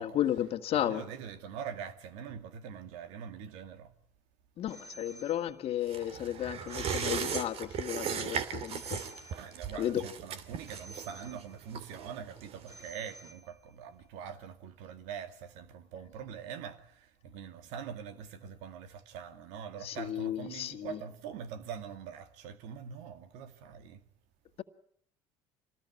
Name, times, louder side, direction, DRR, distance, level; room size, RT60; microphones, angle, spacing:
voice 1, 0.0-1.0 4.6-9.0 9.8-10.0 19.8-21.0, left 11 dB, 55° left, 1.8 m, -33 dB
voice 2, 0.7-3.9 8.8-9.0 9.3-24.0, right 7 dB, 75° right, 2.2 m, -43 dB
Telephone, 4.7-5.9 6.7-7.9 8.7-9.9 10.7-11.9 12.7-13.9, right 1 dB, 25° right, 4.1 m, -53 dB
sound 1, 5.9-12.9 13.2-13.3, right 7 dB, 55° right, 2.6 m, -37 dB
26.0 x 19.5 x 9.8 m
supercardioid pair, 85°, 12 cm